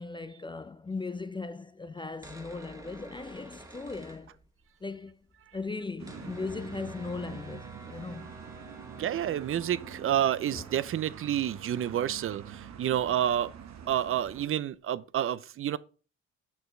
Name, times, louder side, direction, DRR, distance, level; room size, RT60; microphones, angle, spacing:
voice 1, 0.0-4.4 4.8-5.1 5.5-8.3 10.1-10.2 10.5-10.6 11.7-11.8, left 3 dB, 15° left, 0.4 m, -38 dB
sound 1, 2.1-4.8 5.1-5.2 5.3-14.8, right 1 dB, 10° right, 1.4 m, -52 dB
sound 2, 6.0-14.5, right 8 dB, 65° right, 0.9 m, -46 dB
voice 2, 9.0-13.5 13.9-15.8, right 11 dB, 45° right, 0.5 m, -29 dB
7.1 x 6.1 x 3.2 m
cardioid pair, 90°, 30 cm